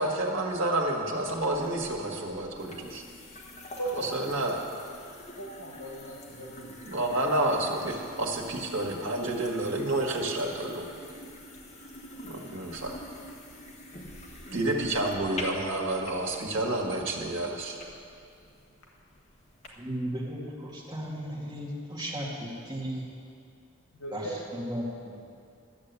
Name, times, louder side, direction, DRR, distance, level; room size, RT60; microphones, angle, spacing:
voice 1, 0.0-3.0 4.1-4.6 6.8-10.9 12.2-13.0 14.5-17.8, right 1 dB, 70° right, 0 dB, 1.8 m, -29 dB
sound 1, 1.3-19.7, left 1 dB, 35° left, 1.4 m, -46 dB
voice 2, 3.8-4.2 5.4-6.8 14.5-14.7 24.0-24.4, right 2 dB, 90° left, -2 dB, 1.8 m, -37 dB
voice 3, 19.8-23.1 24.1-24.3 24.5-25.2, equal, 20° right, -4 dB, 2.1 m, -35 dB
12.0 x 7.6 x 8.3 m, 2.4 s
head